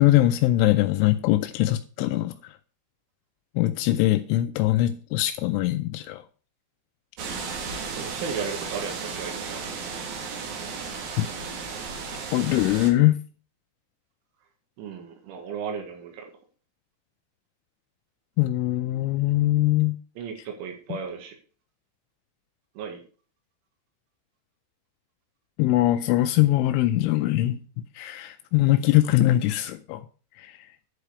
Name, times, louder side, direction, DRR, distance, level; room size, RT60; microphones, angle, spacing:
voice 1, 0.0-2.5 3.6-6.2 11.2-11.3 12.3-13.2 18.4-20.0 25.6-27.6 28.0-30.0 30.4-30.6, left 15 dB, 85° left, 3.0 m, -22 dB
sound 1, 7.2-12.9, right 5 dB, 60° right, 3.1 m, -34 dB
voice 2, 8.0-9.6 14.8-16.3 20.2-21.4 22.8-23.0, right 6 dB, 85° right, 4.0 m, -35 dB
11.0 x 4.9 x 6.8 m
omnidirectional pair, 5.4 m